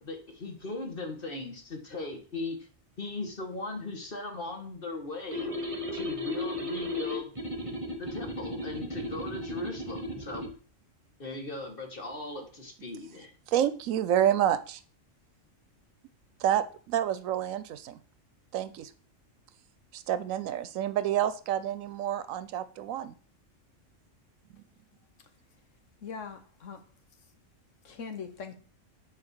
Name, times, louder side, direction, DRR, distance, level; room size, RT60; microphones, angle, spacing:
voice 1, 0.0-2.7 3.0-5.5 5.9-7.4 8.0-10.5 11.2-13.3, left 2 dB, 45° left, 1.7 m, -38 dB
sound 1, 5.3-10.5, left 1 dB, 25° right, 1.0 m, -35 dB
voice 2, 13.5-14.8 16.4-18.0 18.5-18.9 19.9-23.1, right 10 dB, 90° right, 1.0 m, -28 dB
voice 3, 26.0-26.8 27.8-28.6, left 5 dB, 70° left, 1.4 m, -41 dB
8.5 x 4.3 x 4.7 m
omnidirectional pair, 1.3 m